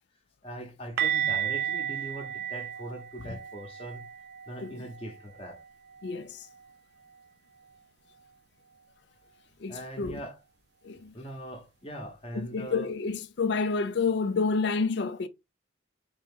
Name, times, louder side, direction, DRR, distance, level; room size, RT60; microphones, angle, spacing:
voice 1, 0.4-4.1 4.5-5.6 9.7-10.4 11.1-12.9, right 1 dB, 30° left, 0.9 m, -41 dB
sound 1, 1.0-6.8 7.0-7.3 7.6-7.8 11.0-11.1, right 10 dB, 55° right, 0.4 m, -34 dB
voice 2, 6.0-6.5 9.6-10.2 10.8-11.1 12.3-15.3, left 4 dB, 60° left, 0.4 m, -29 dB
3.7 x 2.9 x 3.6 m
head